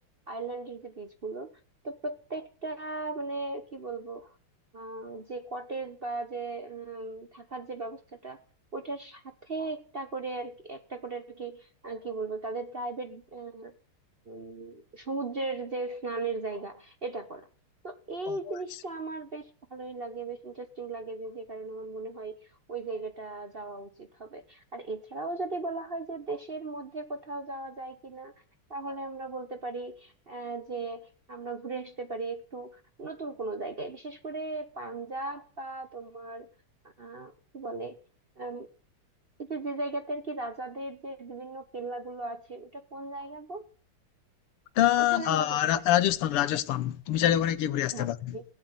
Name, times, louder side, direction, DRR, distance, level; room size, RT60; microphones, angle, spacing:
voice 1, 0.3-1.5 1.8-4.4 4.7-8.4 8.7-13.7 14.3-17.5 17.8-28.3 28.7-36.5 37.0-38.0 38.4-38.7 39.5-43.7 45.0-45.9 47.9-48.4, right 3 dB, 45° right, 0.8 m, -37 dB
voice 2, 44.8-48.4, left 12 dB, 90° left, 1.9 m, -25 dB
17.0 x 7.8 x 9.5 m
omnidirectional pair, 2.4 m